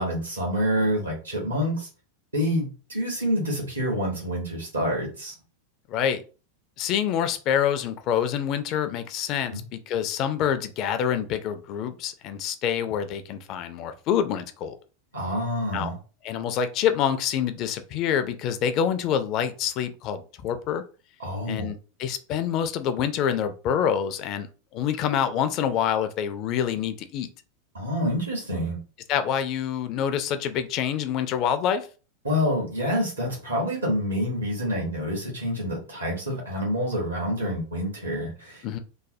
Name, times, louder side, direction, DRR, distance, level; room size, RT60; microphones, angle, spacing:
voice 1, 0.0-1.9 2.3-5.3 9.5-9.6 15.1-16.0 21.2-21.7 27.7-28.8 32.2-38.6, equal, 80° right, -2 dB, 1.3 m, -27 dB
voice 2, 5.9-6.2 6.8-14.7 15.7-15.9 16.2-20.8 21.5-24.5 24.7-27.3 29.1-31.9 38.6-38.8, left 9 dB, 40° left, 9 dB, 0.4 m, -26 dB
3.1 x 2.1 x 2.6 m, 0.35 s
figure-of-eight pair, 90°, 0 cm